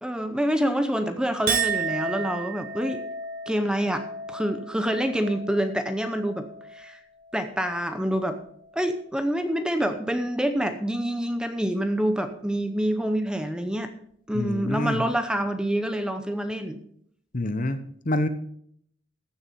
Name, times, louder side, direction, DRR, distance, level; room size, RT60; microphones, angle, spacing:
voice 1, 0.0-3.0 3.5-4.0 4.3-6.5 6.7-7.0 7.3-8.4 8.7-13.9 14.3-16.8, equal, 5° right, 8 dB, 0.7 m, -26 dB
Chink clink, 1.5-8.0 8.4-9.0, right 5 dB, 45° right, 1.1 m, -34 dB
voice 2, 14.3-15.0 17.3-18.3, left 1 dB, 40° left, 11 dB, 0.9 m, -27 dB
14.5 x 7.2 x 5.4 m, 0.66 s
head